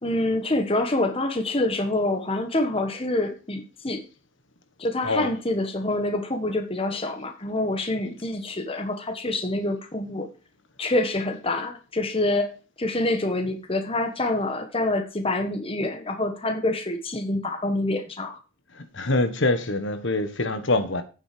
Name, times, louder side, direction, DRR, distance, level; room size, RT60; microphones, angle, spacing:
voice 1, 0.0-4.0 4.8-10.3 10.8-12.5 12.8-18.4, left 2 dB, 25° left, 1.3 m, -26 dB
voice 2, 18.8-21.0, left 2 dB, 60° left, 1.5 m, -25 dB
9.3 x 7.5 x 5.1 m
head